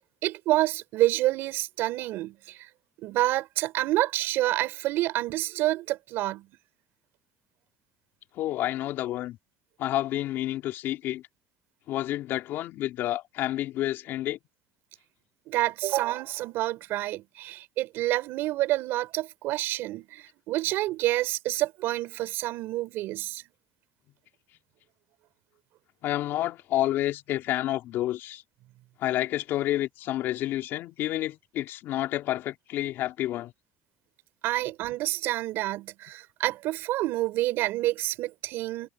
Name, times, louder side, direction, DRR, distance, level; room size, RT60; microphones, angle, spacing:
voice 1, 0.2-2.7 3.0-6.5 15.5-23.4 34.4-38.9, right 16 dB, 70° right, 4.5 m, -28 dB
voice 2, 8.4-9.4 9.8-11.2 11.9-14.4 26.0-28.4 29.0-33.5, left 14 dB, 65° left, 3.6 m, -29 dB
supercardioid pair, 100°, 4 cm